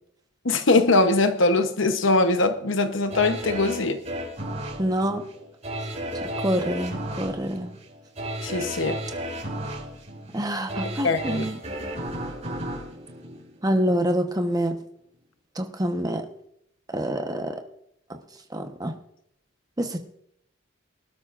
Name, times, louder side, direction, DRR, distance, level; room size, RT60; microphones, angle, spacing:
voice 1, 0.4-4.0 8.4-9.0 11.0-11.4, left 2 dB, 70° left, 1.0 m, -21 dB
sound 1, 3.1-14.1 14.5-14.6, right 1 dB, 35° right, 6.4 m, -34 dB
voice 2, 4.8-5.2 6.2-7.7 10.3-11.6 13.6-14.8 15.6-16.3 16.9-17.6 18.5-18.9 19.8-20.0, equal, 20° right, 1.1 m, -26 dB
24.0 x 12.5 x 2.6 m
head